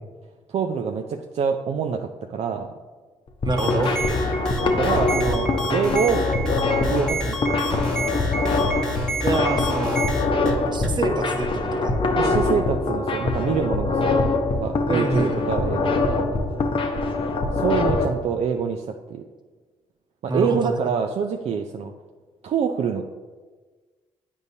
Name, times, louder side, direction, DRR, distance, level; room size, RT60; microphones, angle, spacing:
voice 1, 0.5-2.7 4.6-6.3 6.9-7.8 8.2-8.6 12.2-14.2 14.5-16.3 17.5-19.2 20.2-21.9 22.4-23.0, right 6 dB, 60° right, 4 dB, 0.4 m, -26 dB
sound 1, 3.3-18.0, left 3 dB, 45° left, 0.8 m, -23 dB
sound 2, 3.5-11.0, equal, 5° left, 1.1 m, -29 dB
voice 2, 3.5-3.9 9.2-10.1 10.7-11.9 14.9-15.5 20.3-20.8, right 2 dB, 40° right, 4 dB, 1.0 m, -25 dB
8.2 x 5.3 x 2.7 m, 1.4 s
supercardioid pair, 60°, 12 cm